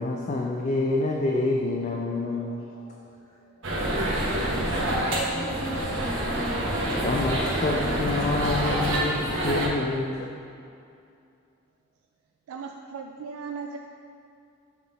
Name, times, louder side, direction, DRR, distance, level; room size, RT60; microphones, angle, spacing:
voice 1, 0.0-2.6 6.8-10.3, left 2 dB, 35° left, 0 dB, 0.3 m, -27 dB
voice 2, 1.9-6.6, equal, 80° left, -4 dB, 1.3 m, -40 dB
sound 1, 3.6-9.7, right 1 dB, 65° right, 1.0 m, -27 dB
voice 3, 12.5-13.8, right 5 dB, 85° right, 3 dB, 0.3 m, -37 dB
7.1 x 3.7 x 4.0 m, 2.5 s
head